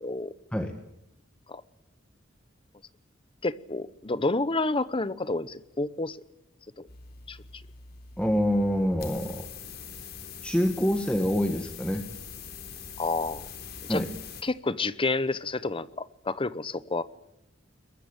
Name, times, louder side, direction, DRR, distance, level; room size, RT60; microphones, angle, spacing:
voice 1, 0.0-0.3 1.5-1.6 3.4-6.2 6.8-6.9 7.3-7.4 13.0-13.4 13.9-14.0 14.4-17.0, left 3 dB, 30° left, 16 dB, 0.9 m, -29 dB
sound 1, 6.9-14.4, left 6 dB, 55° left, 3.6 m, -43 dB
voice 2, 8.2-9.5 10.4-12.1 13.9-14.1, equal, 5° left, 5 dB, 1.6 m, -26 dB
22.5 x 21.0 x 8.9 m, 0.80 s
head